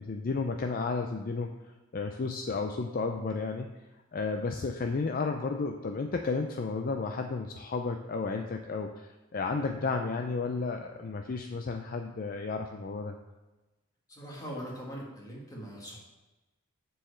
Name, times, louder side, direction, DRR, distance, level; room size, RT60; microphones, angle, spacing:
voice 1, 0.0-1.5 1.9-3.8 4.1-13.2, left 4 dB, 40° left, 5 dB, 0.4 m, -32 dB
voice 2, 14.1-16.0, equal, 15° left, -4 dB, 1.9 m, -41 dB
7.4 x 4.7 x 6.6 m, 1.1 s
head